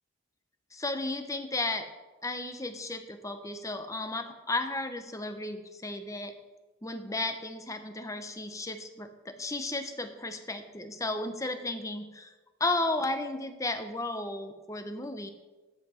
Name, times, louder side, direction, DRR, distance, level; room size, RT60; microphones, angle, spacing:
voice 1, 0.7-1.9 2.2-6.3 6.8-12.3 12.6-15.3, left 2 dB, 15° left, 8 dB, 0.8 m, -34 dB
13.5 x 7.6 x 4.3 m, 1.2 s
head